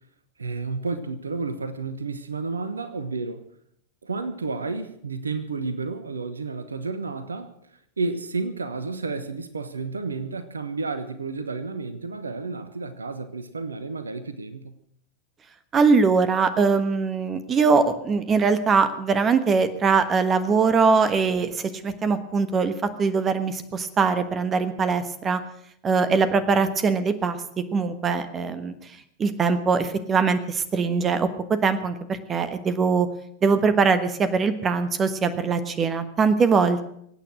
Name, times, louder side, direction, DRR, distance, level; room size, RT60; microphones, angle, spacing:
voice 1, 0.4-3.4 4.0-7.5 8.0-14.8, right 3 dB, 75° right, 1.1 m, -31 dB
voice 2, 15.7-22.7 23.0-25.4 25.8-28.7 29.2-33.1 33.4-36.9, right 5 dB, 25° right, 1.3 m, -22 dB
23.5 x 9.0 x 6.3 m
figure-of-eight pair, 90°, 0 cm